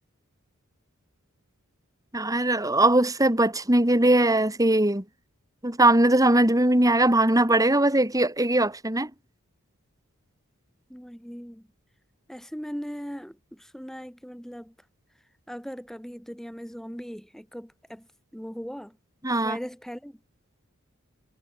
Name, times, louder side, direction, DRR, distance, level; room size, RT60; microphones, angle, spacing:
voice 1, 2.1-5.0 5.6-9.1 19.2-19.6, right 1 dB, 15° right, 2.9 m, -20 dB
voice 2, 10.9-11.7 12.3-14.7 15.5-18.1 18.3-19.0 19.4-20.2, equal, ahead, 3.8 m, -39 dB
head